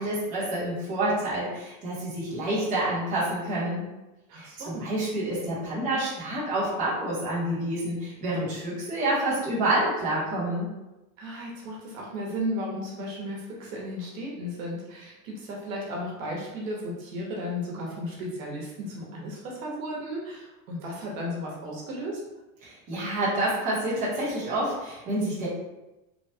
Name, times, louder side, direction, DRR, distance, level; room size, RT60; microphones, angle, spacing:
voice 1, 0.0-3.9 4.3-10.7 22.6-25.5, right 1 dB, 20° right, -9 dB, 0.8 m, -28 dB
voice 2, 4.3-4.9 11.2-22.2, equal, 75° right, -2 dB, 1.0 m, -34 dB
3.1 x 2.1 x 2.8 m, 1.0 s
supercardioid pair, 180°, 41 cm